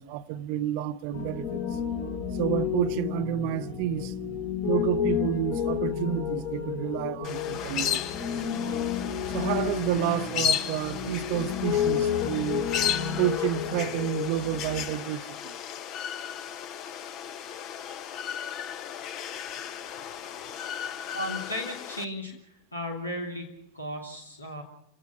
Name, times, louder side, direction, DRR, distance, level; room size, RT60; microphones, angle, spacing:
voice 1, 0.0-1.8 2.3-4.1 4.6-8.3 9.3-12.7 13.2-15.6, right 11 dB, 45° right, 0.9 m, -30 dB
Piano, 1.1-14.8, left 8 dB, 55° left, 5.2 m, -31 dB
sound 1, 7.2-22.1, left 9 dB, 35° left, 1.0 m, -34 dB
voice 2, 21.1-22.3 22.7-23.5 23.7-24.6, left 1 dB, 85° left, 3.0 m, -35 dB
28.5 x 17.5 x 5.9 m
figure-of-eight pair, 90°, 0 cm